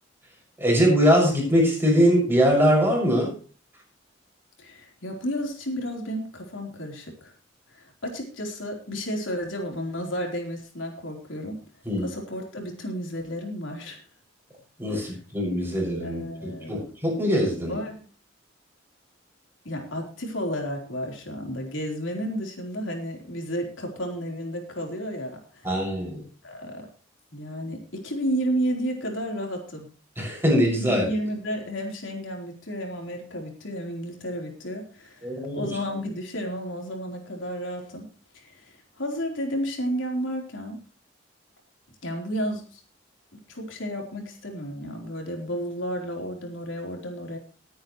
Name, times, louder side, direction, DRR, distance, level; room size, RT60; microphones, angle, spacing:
voice 1, 0.6-3.3 11.8-12.1 14.8-17.7 25.6-26.2 30.2-31.1 35.2-35.7, equal, 10° right, -2 dB, 6.5 m, -22 dB
voice 2, 4.6-7.3 7.7-11.6 12.0-14.0 14.9-15.1 16.0-16.8 17.7-18.0 19.6-25.7 26.4-26.9 27.3-29.9 30.8-38.1 38.3-40.8 42.0-42.8 43.5-47.4, equal, 75° left, 1 dB, 4.1 m, -32 dB
20.5 x 9.4 x 3.2 m, 0.37 s
head